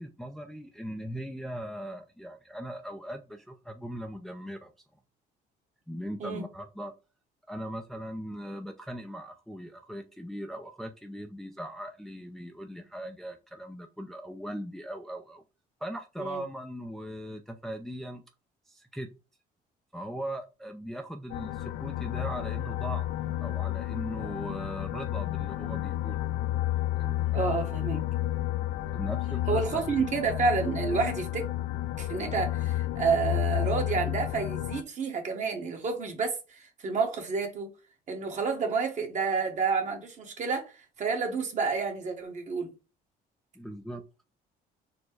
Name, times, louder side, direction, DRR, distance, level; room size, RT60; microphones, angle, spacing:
voice 1, 0.0-4.7 5.9-6.9 7.5-15.4 15.8-18.2 18.7-19.1 19.9-23.1 23.4-26.2 27.0-27.6 28.9-30.1 43.6-44.0, equal, ahead, 0.4 m, -39 dB
sound 1, 21.3-34.8, left 14 dB, 60° left, 0.4 m, -31 dB
voice 2, 27.3-28.0 29.5-31.5 32.0-37.7 38.1-42.7, right 5 dB, 45° right, 1.3 m, -29 dB
4.3 x 2.2 x 4.5 m
cardioid pair, 110°, 17 cm